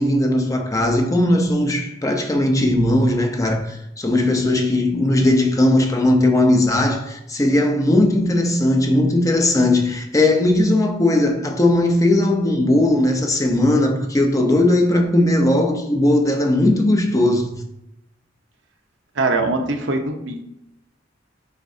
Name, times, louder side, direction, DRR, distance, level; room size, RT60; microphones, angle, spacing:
voice 1, 0.0-17.6, left 1 dB, 20° left, 0.7 m, -18 dB
voice 2, 19.2-20.4, right 3 dB, 75° right, 0.8 m, -22 dB
6.6 x 5.2 x 2.8 m
head